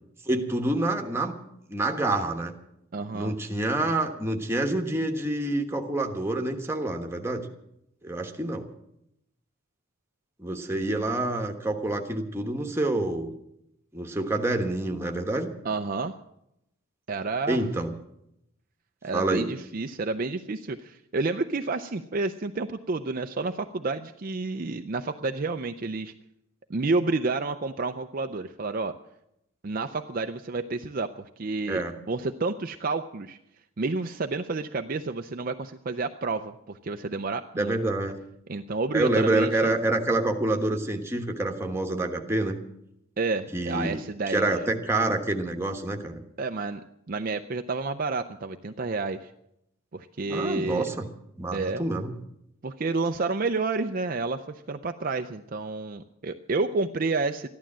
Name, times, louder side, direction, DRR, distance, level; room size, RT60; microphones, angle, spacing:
voice 1, 0.3-1.3 1.7-2.5 3.1-7.5 8.0-8.7 10.4-13.3 13.9-15.5 17.5-17.9 19.1-19.5 31.7-31.9 37.6-38.2 38.9-42.6 43.5-44.0 44.3-46.2 50.3-51.1 51.4-52.1, right 2 dB, 10° right, 3 dB, 1.2 m, -27 dB
voice 2, 2.9-3.3 15.6-16.2 17.1-17.6 19.0-26.1 26.7-28.9 29.6-33.4 33.8-37.8 38.5-39.7 43.2-44.4 46.4-46.8 47.1-49.3 49.9-50.9 51.5-51.8 52.6-57.5, right 3 dB, 40° right, 7 dB, 0.5 m, -30 dB
14.0 x 11.5 x 7.4 m, 0.80 s
head